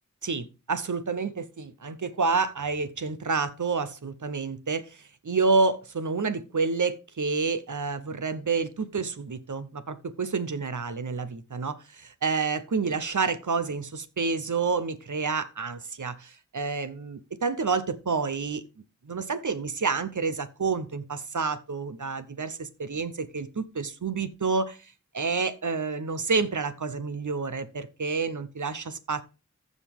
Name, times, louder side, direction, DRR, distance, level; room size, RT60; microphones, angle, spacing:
voice 1, 0.2-18.6 19.0-24.8 25.1-29.2, right 4 dB, 90° right, 0.8 m, -29 dB
14.5 x 5.2 x 3.6 m
wide cardioid pair, 45°, 29 cm